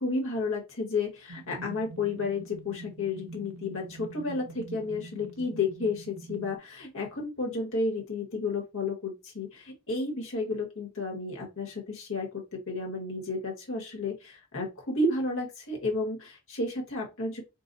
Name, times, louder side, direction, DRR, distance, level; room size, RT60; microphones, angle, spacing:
voice 1, 0.0-17.4, left 3 dB, 60° left, 1.4 m, -32 dB
sound 1, 1.3-6.6, right 2 dB, 75° right, 0.6 m, -45 dB
3.9 x 2.4 x 4.0 m
head